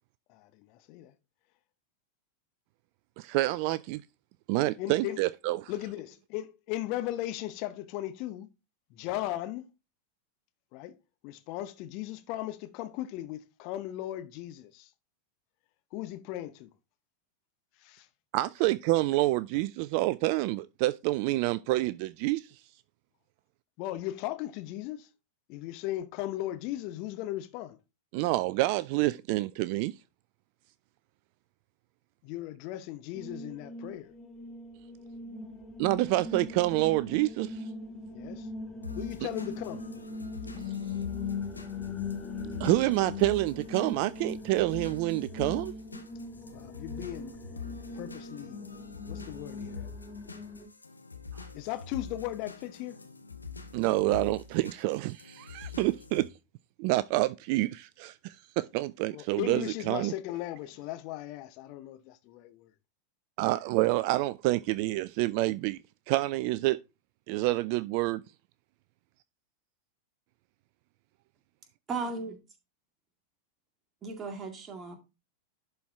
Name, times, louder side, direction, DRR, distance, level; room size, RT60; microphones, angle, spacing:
voice 1, 0.3-1.1 4.8-5.2 5.7-8.5 8.9-9.7 10.7-11.0 11.2-14.9 15.9-16.7 17.8-18.1 23.8-25.1 25.5-27.8 32.2-34.1 38.1-38.5 38.9-39.9 46.5-47.3 47.9-48.6 49.1-49.9 51.5-53.0 59.1-62.7, left 14 dB, 45° left, 0.8 m, -37 dB
voice 2, 3.2-4.0 4.5-5.7 18.3-22.5 28.1-29.9 35.8-37.6 40.7-40.8 42.6-45.7 51.3-51.5 53.7-56.3 56.8-60.1 63.4-65.8 66.1-66.8 67.3-68.2, right 18 dB, 45° right, 0.3 m, -28 dB
sound 1, 33.1-50.7, left 3 dB, 20° left, 1.7 m, -40 dB
sound 2, 38.8-56.3, left 5 dB, 80° left, 0.9 m, -45 dB
voice 3, 71.9-72.4 74.0-74.9, right 4 dB, 25° right, 2.0 m, -36 dB
11.0 x 4.4 x 3.6 m
figure-of-eight pair, 90°, 0 cm